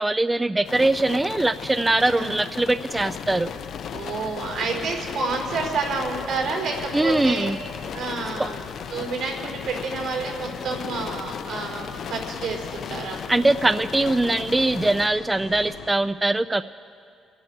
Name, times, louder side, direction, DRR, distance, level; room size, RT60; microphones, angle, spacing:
voice 1, 0.0-3.5 6.9-7.6 13.3-16.6, right 2 dB, 15° right, 12 dB, 0.4 m, -22 dB
sound 1, 0.6-15.1, left 8 dB, 65° left, 0.4 m, -36 dB
sound 2, 2.9-15.9, left 6 dB, 90° left, 1.2 m, -41 dB
voice 2, 3.9-7.5 7.9-8.6 8.9-13.2, right 4 dB, 85° right, 0 dB, 4.9 m, -29 dB
27.0 x 10.5 x 4.9 m, 2.3 s
cardioid pair, 90°, 0 cm